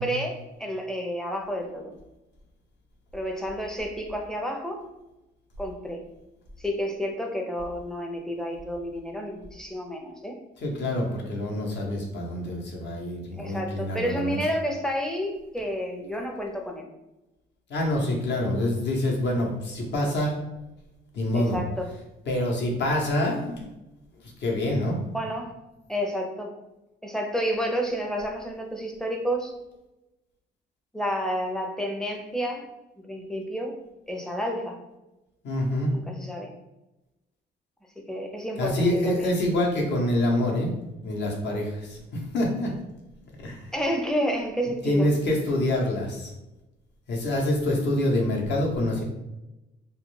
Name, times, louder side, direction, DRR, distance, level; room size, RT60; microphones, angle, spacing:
voice 1, 0.0-1.9 3.1-4.8 5.6-6.0 6.6-10.4 13.4-16.9 21.3-21.9 25.1-25.5 25.9-26.5 27.0-29.5 30.9-32.7 33.0-33.7 34.1-34.8 35.9-36.5 38.1-39.4 43.7-45.1, equal, 5° left, 2 dB, 0.5 m, -30 dB
voice 2, 10.6-14.4 17.7-20.4 21.1-21.6 22.3-23.6 24.2-25.0 35.4-35.9 38.6-40.7 41.0-42.7 43.4-43.7 44.8-46.3 47.1-49.0, left 1 dB, 60° left, -1 dB, 0.8 m, -26 dB
2.3 x 2.1 x 3.1 m, 0.96 s
cardioid pair, 90°, 20 cm